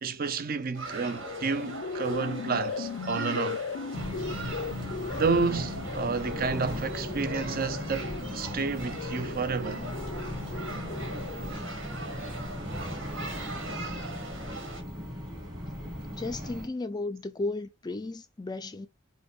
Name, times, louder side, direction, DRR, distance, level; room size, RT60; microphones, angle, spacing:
voice 1, 0.0-3.6 5.1-9.9, right 4 dB, 50° right, 0.5 m, -30 dB
sound 1, 0.7-14.8, right 2 dB, 75° right, 1.7 m, -41 dB
sound 2, 1.1-11.6, left 5 dB, 85° left, 0.4 m, -38 dB
sound 3, 3.9-16.7, equal, 20° right, 1.8 m, -37 dB
voice 2, 16.1-18.9, left 2 dB, 20° left, 0.4 m, -34 dB
5.1 x 2.2 x 4.3 m
head